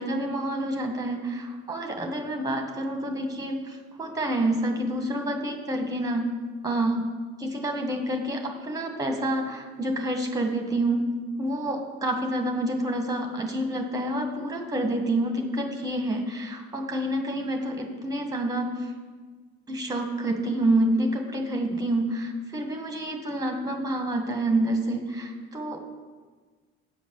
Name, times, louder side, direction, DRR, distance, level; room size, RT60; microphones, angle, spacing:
voice 1, 0.0-6.3 6.6-7.0 7.4-11.1 11.4-18.9 19.7-25.8, right 1 dB, 10° right, 3 dB, 1.7 m, -28 dB
8.1 x 5.1 x 7.1 m, 1.4 s
figure-of-eight pair, 55°, 30 cm